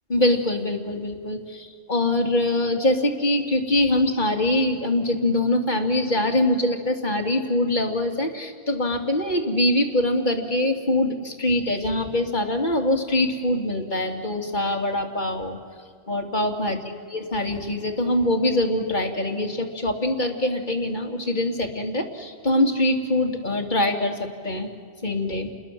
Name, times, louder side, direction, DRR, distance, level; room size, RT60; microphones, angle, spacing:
voice 1, 0.1-15.6 16.1-16.8 17.1-24.7 25.0-25.5, left 1 dB, 40° left, 2 dB, 2.8 m, -23 dB
28.0 x 21.0 x 7.5 m, 2.1 s
omnidirectional pair, 1.2 m